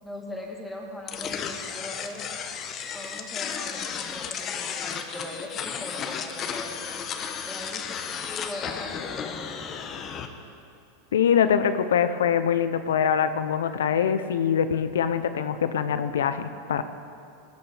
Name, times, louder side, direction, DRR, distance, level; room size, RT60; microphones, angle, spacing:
voice 1, 0.0-2.4 2.9-7.1 7.4-9.8, left 1 dB, 5° left, -2 dB, 2.5 m, -40 dB
sound 1, 1.1-10.3, left 7 dB, 35° left, 1.1 m, -34 dB
voice 2, 11.1-16.8, left 8 dB, 85° left, 11 dB, 0.7 m, -23 dB
18.5 x 9.7 x 5.0 m, 2.5 s
hypercardioid pair, 110°, 0 cm